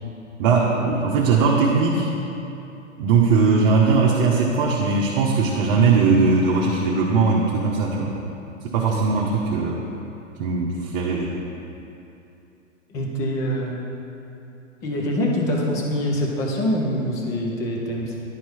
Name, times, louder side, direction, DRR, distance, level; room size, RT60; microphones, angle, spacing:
voice 1, 0.4-2.0 3.0-8.1 8.6-9.9 10.4-11.3, right 4 dB, 45° right, -3 dB, 0.9 m, -19 dB
voice 2, 8.8-9.1 12.9-13.8 14.8-18.2, equal, 10° left, -1 dB, 0.3 m, -25 dB
10.5 x 4.6 x 4.4 m, 2.8 s
hypercardioid pair, 115°, 39 cm